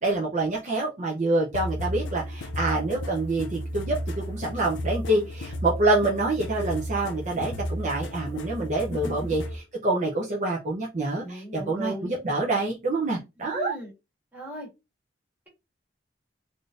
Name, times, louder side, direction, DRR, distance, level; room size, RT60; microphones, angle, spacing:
voice 1, 0.0-13.7, right 2 dB, 40° right, -1 dB, 0.6 m, -26 dB
sound 1, 1.5-9.6, equal, 75° left, 0.4 m, -33 dB
voice 2, 8.9-9.4 11.2-12.2 13.5-13.9 14.3-14.7, right 1 dB, 10° right, -3 dB, 1.4 m, -37 dB
3.5 x 2.6 x 2.4 m, 0.24 s
head